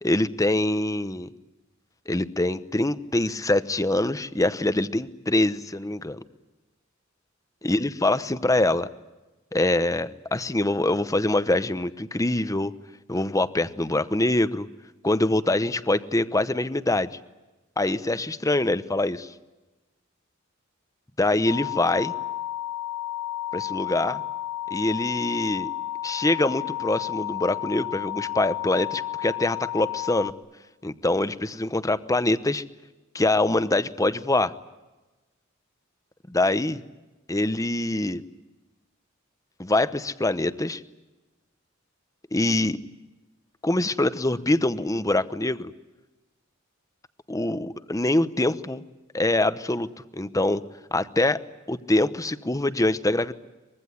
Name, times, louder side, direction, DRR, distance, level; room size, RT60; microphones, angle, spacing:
voice 1, 0.0-1.3 2.1-6.2 7.6-8.9 9.5-12.7 13.1-14.7 15.0-17.2 17.8-19.3 21.2-22.1 23.5-24.2 24.7-25.7 26.0-30.3 30.8-32.6 33.1-34.5 36.3-36.8 37.3-38.2 39.6-40.8 42.3-42.8 43.6-45.7 47.3-48.8 49.1-49.9 50.1-50.6 50.9-51.4 51.7-53.3, left 2 dB, 15° left, 13 dB, 0.9 m, -24 dB
sound 1, 21.4-30.3, left 14 dB, 40° left, 1.2 m, -32 dB
24.0 x 22.0 x 9.6 m, 1.1 s
head